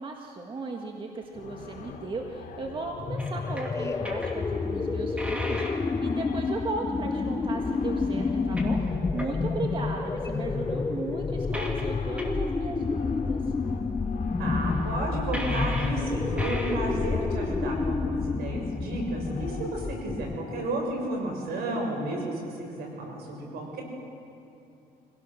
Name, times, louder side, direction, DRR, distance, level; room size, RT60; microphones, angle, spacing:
voice 1, 0.0-5.6 6.0-13.5, right 3 dB, 30° right, 1 dB, 1.7 m, -36 dB
sound 1, 1.3-20.8, left 5 dB, 50° left, 2.8 m, -43 dB
sound 2, 3.0-20.6, left 4 dB, 15° left, 0.5 m, -29 dB
sound 3, 3.2-3.8 4.0-4.6 5.2-6.0 7.1-7.2 8.2-9.6 10.2-10.7 11.5-11.9 12.2-12.3 13.0-13.1 13.8-13.9 14.1-14.2 14.3-14.5 15.3-16.0 16.3-17.0, equal, 5° right, 2.6 m, -38 dB
voice 2, 14.4-23.8, right 1 dB, 70° right, 0 dB, 6.6 m, -32 dB
25.0 x 17.5 x 6.5 m, 2.8 s
cardioid pair, 110°, 17 cm